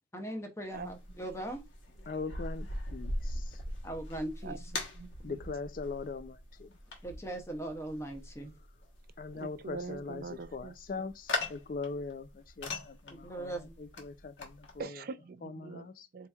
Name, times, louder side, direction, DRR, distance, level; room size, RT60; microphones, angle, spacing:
voice 1, 0.1-1.6 3.8-4.6 7.0-8.5 13.1-13.7, right 1 dB, 15° left, 0.7 m, -39 dB
sound 1, 0.7-14.8, left 2 dB, 70° left, 1.1 m, -41 dB
voice 2, 2.1-3.6 5.2-6.7 9.2-15.0 15.4-16.1, left 4 dB, 45° left, 0.4 m, -41 dB
voice 3, 4.4-5.3 9.3-10.7 14.8-15.9 16.1-16.3, right 4 dB, 45° right, 0.4 m, -43 dB
4.4 x 2.8 x 2.3 m
head